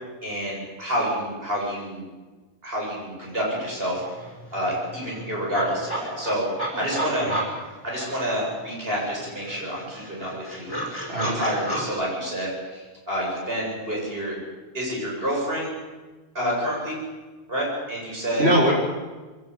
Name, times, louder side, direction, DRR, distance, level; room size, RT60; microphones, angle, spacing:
voice 1, 0.2-2.0 2.6-4.0 4.5-6.5 6.7-7.3 7.8-11.0 11.3-14.4 14.7-15.7 16.3-17.0 17.5-18.4, equal, 70° right, -3 dB, 8.4 m, -28 dB
sound 1, 3.7-3.8 4.0-8.6 9.0-11.9, right 1 dB, 20° left, 5.5 m, -33 dB
voice 2, 6.9-7.3 11.1-11.4 18.3-18.7, equal, 90° right, -4 dB, 6.2 m, -22 dB
22.5 x 17.0 x 8.7 m, 1.3 s
omnidirectional pair, 1.0 m